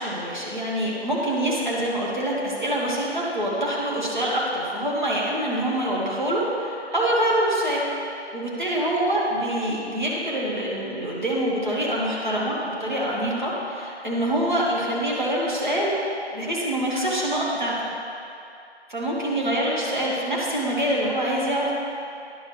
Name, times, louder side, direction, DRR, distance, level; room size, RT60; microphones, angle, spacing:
voice 1, 0.0-7.8 8.1-15.9 16.3-17.9 18.9-21.7, right 1 dB, 45° right, -6 dB, 1.6 m, -25 dB
10.5 x 5.6 x 3.0 m, 2.6 s
figure-of-eight pair, 175°, 33 cm